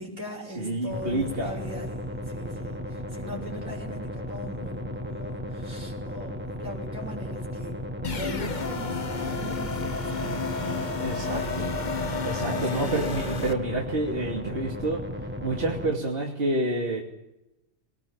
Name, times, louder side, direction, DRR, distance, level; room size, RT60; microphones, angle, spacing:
voice 1, 0.0-7.8 8.1-10.8 11.3-13.2, equal, 75° right, 0 dB, 7.3 m, -40 dB
voice 2, 0.6-1.5 11.0-11.6 12.2-15.0 15.4-17.0, right 2 dB, 45° right, 0 dB, 2.9 m, -28 dB
sound 1, 0.9-15.9, equal, 10° right, 1.6 m, -35 dB
sound 2, 8.0-13.5, left 4 dB, 35° left, 1.3 m, -31 dB
22.5 x 19.0 x 8.8 m, 0.91 s
omnidirectional pair, 1.5 m